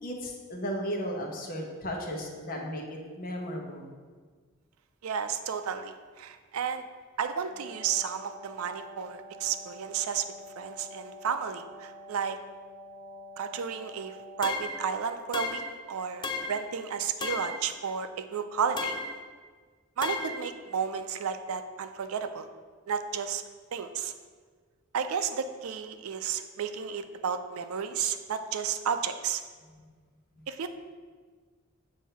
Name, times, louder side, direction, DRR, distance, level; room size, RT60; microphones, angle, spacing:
voice 1, 0.0-3.9, equal, 45° left, 0 dB, 0.9 m, -35 dB
voice 2, 5.0-6.8 7.2-10.2 10.6-12.4 13.4-15.6 15.9-19.0 20.0-22.5 22.9-23.4 23.7-24.1 24.9-29.4 30.5-30.7, right 7 dB, 85° right, 9 dB, 0.4 m, -32 dB
Wind instrument woodwind instrument, 7.4-15.4, equal, 20° right, 1.5 m, -47 dB
sound 1, 14.4-14.9 15.3-15.8 16.2-16.7 17.2-17.7 18.8-19.2 20.0-20.5, left 3 dB, 20° left, 0.4 m, -34 dB
7.3 x 2.7 x 5.5 m, 1.5 s
head